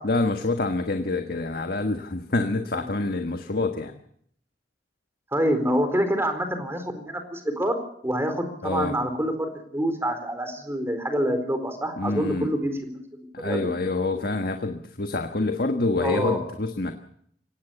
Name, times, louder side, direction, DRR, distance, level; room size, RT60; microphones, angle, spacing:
voice 1, 0.0-3.9 8.6-8.9 12.0-12.5 13.3-16.9, left 3 dB, 60° left, 5 dB, 1.5 m, -26 dB
voice 2, 5.3-7.8 8.0-13.7 16.0-16.4, equal, 15° right, 7 dB, 4.2 m, -27 dB
24.0 x 18.5 x 7.1 m, 0.67 s
head